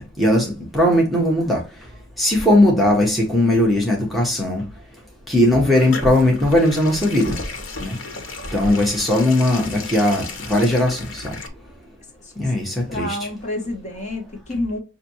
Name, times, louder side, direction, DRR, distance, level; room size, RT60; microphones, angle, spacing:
voice 1, 0.2-1.6 2.2-4.6 5.3-7.4 7.8-8.0 8.5-11.3 12.4-13.2, left 1 dB, ahead, 0.8 m, -18 dB
sound 1, 5.2-11.5, left 3 dB, 85° left, 1.0 m, -34 dB
voice 2, 12.9-14.8, left 1 dB, 35° left, 1.2 m, -29 dB
5.8 x 2.6 x 2.7 m
head